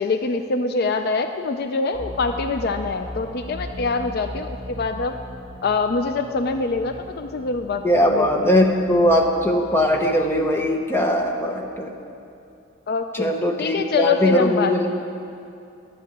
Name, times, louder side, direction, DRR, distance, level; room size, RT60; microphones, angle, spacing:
voice 1, 0.0-5.2 5.6-8.7 12.9-13.3 13.6-14.7, left 4 dB, 50° left, 7 dB, 0.4 m, -24 dB
sound 1, 1.9-11.8, left 1 dB, 85° left, 3.0 m, -39 dB
voice 2, 7.8-11.9 13.2-14.9, left 1 dB, 10° left, 2 dB, 1.0 m, -20 dB
11.0 x 7.7 x 9.3 m, 2.6 s
head